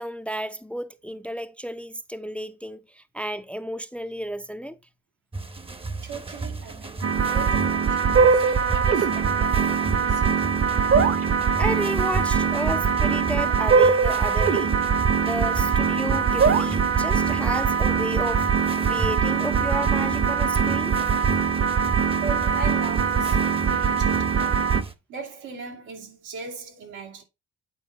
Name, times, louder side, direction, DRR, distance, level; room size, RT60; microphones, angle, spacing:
voice 1, 0.0-4.8 11.6-14.8 15.2-18.5 18.9-20.9, equal, 5° left, 0.5 m, -32 dB
sound 1, 5.3-24.9, right 3 dB, 20° right, 0.8 m, -36 dB
voice 2, 6.0-10.8 22.2-24.8 25.1-27.2, right 4 dB, 90° right, 2.5 m, -39 dB
sound 2, 7.0-24.8, right 6 dB, 45° right, 1.1 m, -22 dB
8.7 x 4.6 x 4.0 m
cardioid pair, 90°, 30 cm